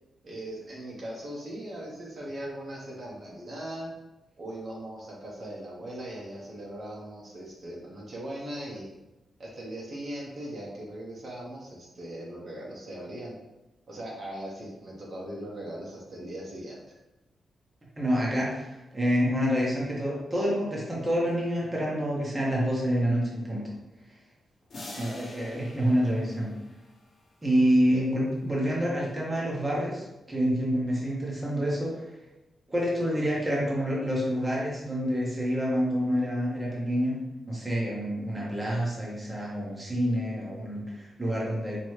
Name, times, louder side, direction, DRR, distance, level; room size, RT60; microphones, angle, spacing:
voice 1, 0.2-3.9 4.4-8.9 9.4-13.3 13.9-17.0 27.9-28.0, right 1 dB, 50° right, -3 dB, 1.1 m, -39 dB
voice 2, 18.0-23.7 25.0-26.5 27.4-32.0 32.7-37.2 37.5-41.8, equal, 15° right, -5 dB, 1.1 m, -27 dB
sound 1, 24.7-27.2, left 2 dB, 50° left, 0.9 m, -45 dB
4.4 x 3.0 x 3.1 m, 0.97 s
wide cardioid pair, 130°, 0 cm